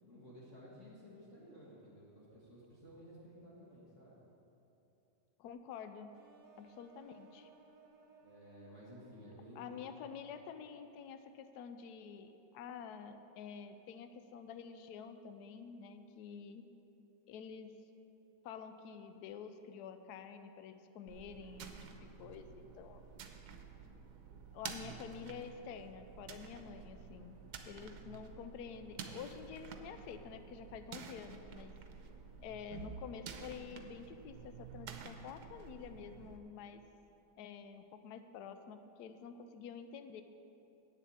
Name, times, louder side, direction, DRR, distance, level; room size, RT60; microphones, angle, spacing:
voice 1, 0.0-4.2 8.2-9.8, equal, 45° left, -7 dB, 1.9 m, -55 dB
voice 2, 5.4-6.1 6.6-7.5 9.6-16.6 17.3-17.7 18.4-21.7 22.0-23.0 24.5-27.4 27.7-31.7 32.4-36.8 37.4-40.2, left 7 dB, 75° left, 9 dB, 1.1 m, -49 dB
sound 1, 6.1-11.0, right 3 dB, 55° right, 1.6 m, -64 dB
sound 2, 21.1-36.4, right 6 dB, 75° right, 1.3 m, -50 dB
8.3 x 7.1 x 8.6 m, 2.9 s
omnidirectional pair, 1.8 m